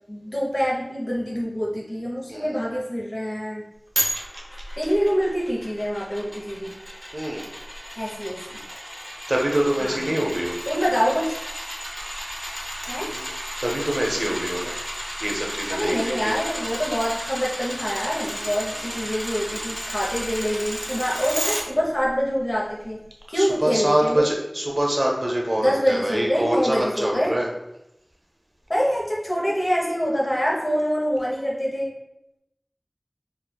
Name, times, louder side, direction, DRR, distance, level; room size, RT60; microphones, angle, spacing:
voice 1, 0.1-3.6 4.8-6.7 8.0-8.6 9.8-10.1 10.7-11.4 12.9-13.2 15.7-23.0 23.3-24.3 25.6-27.3 28.7-31.9, equal, 55° left, -4 dB, 0.9 m, -25 dB
sound 1, 4.0-21.6 22.1-22.2, equal, 5° right, 0.7 m, -33 dB
voice 2, 7.1-7.5 9.3-10.6 13.1-13.3 13.6-14.7 15.2-16.3 18.0-18.1 18.7-19.0 23.3-27.5, right 1 dB, 60° right, -1 dB, 0.7 m, -25 dB
4.2 x 2.5 x 2.2 m, 0.87 s
wide cardioid pair, 40°, 0 cm